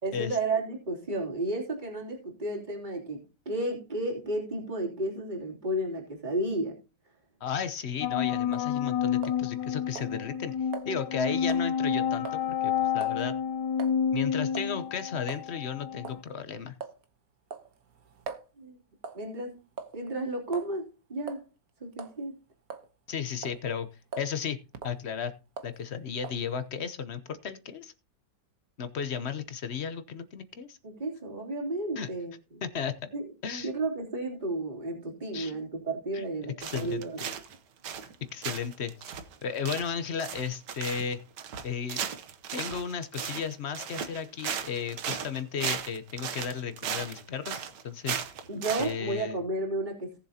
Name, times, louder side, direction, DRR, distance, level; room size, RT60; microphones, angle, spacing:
voice 1, 0.0-3.2 3.4-6.7 18.6-18.8 19.1-19.6 19.9-21.4 21.8-22.3 30.8-32.3 33.1-33.2 33.6-37.2 48.5-50.2, right 2 dB, 25° right, -2 dB, 3.4 m, -32 dB
voice 2, 7.4-10.5 10.8-13.3 14.1-16.7 23.1-23.9 24.2-24.6 24.8-25.3 25.6-27.9 28.8-30.8 32.0-32.1 32.6-33.1 33.4-33.7 35.3-35.6 36.1-36.3 36.6-37.3 38.3-38.9 39.4-41.2 41.6-42.0 42.5-48.2 48.8-49.4, left 7 dB, 50° left, 11 dB, 0.9 m, -34 dB
sound 1, 8.0-16.2, left 8 dB, 70° left, 1.3 m, -29 dB
sound 2, 8.5-8.7 9.2-9.7 10.0-10.1 10.7-10.9 11.5-11.7 12.3-12.4 13.0-13.2 13.8-14.0 14.6-14.8 15.3-15.5 16.0-16.2 16.8-17.0 17.5-18.5 19.0-19.3 19.8-20.1 20.5-20.7 21.3-21.4 21.9-22.2 22.7-23.1 23.4-23.6 24.1-24.3 24.7-25.0 25.6-25.8 26.2-26.4, right 5 dB, 55° right, 1.4 m, -41 dB
sound 3, 36.6-37.6 37.8-38.2 38.4-48.9, right 8 dB, 75° right, 1.5 m, -36 dB
18.5 x 7.3 x 2.8 m, 0.32 s
omnidirectional pair, 1.9 m